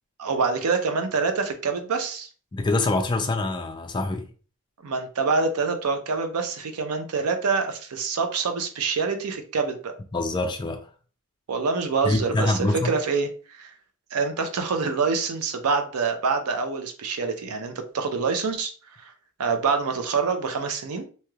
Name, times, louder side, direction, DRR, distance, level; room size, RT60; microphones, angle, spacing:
voice 1, 0.2-2.3 4.8-9.9 11.5-13.7 14.1-18.7 19.0-19.1 19.4-21.1, right 4 dB, 85° right, 0.5 m, -26 dB
voice 2, 2.5-4.3 10.1-10.9 12.0-12.9, left 2 dB, 20° left, 0.3 m, -25 dB
3.1 x 2.8 x 2.3 m
head